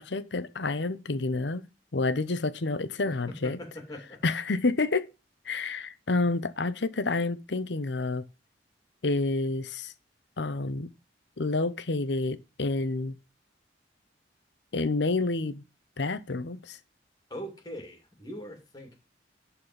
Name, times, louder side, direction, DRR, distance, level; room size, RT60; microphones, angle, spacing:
voice 1, 0.0-1.6 1.9-3.6 4.2-5.1 5.5-8.2 9.0-9.9 10.4-10.9 11.4-13.2 14.7-15.6 16.0-16.8, left 3 dB, 70° left, 0.9 m, -29 dB
voice 2, 3.4-4.2 17.3-18.9, equal, 20° left, 2.8 m, -41 dB
11.0 x 4.4 x 5.2 m
head